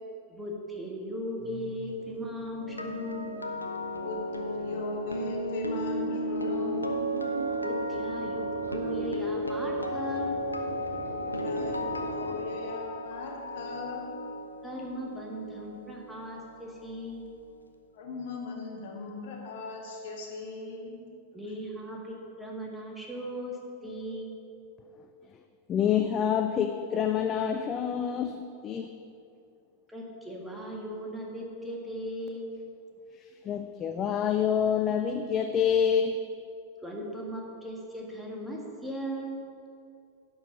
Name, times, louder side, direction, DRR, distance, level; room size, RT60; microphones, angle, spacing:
voice 1, 0.3-3.3 7.6-10.4 14.6-17.3 21.3-24.3 29.9-32.5 36.8-39.4, equal, 5° right, -2 dB, 1.8 m, -38 dB
sound 1, 1.4-12.9, right 2 dB, 85° right, 1.2 m, -44 dB
sound 2, 2.6-16.6 16.9-17.2, equal, 85° left, 0.7 m, -34 dB
voice 2, 4.0-7.0 11.1-14.1 17.9-21.0, left 3 dB, 55° left, -1 dB, 1.8 m, -39 dB
voice 3, 25.7-28.9 33.2-36.2, left 8 dB, 30° left, 7 dB, 0.4 m, -27 dB
11.0 x 4.8 x 7.3 m, 2.5 s
figure-of-eight pair, 90°, 0 cm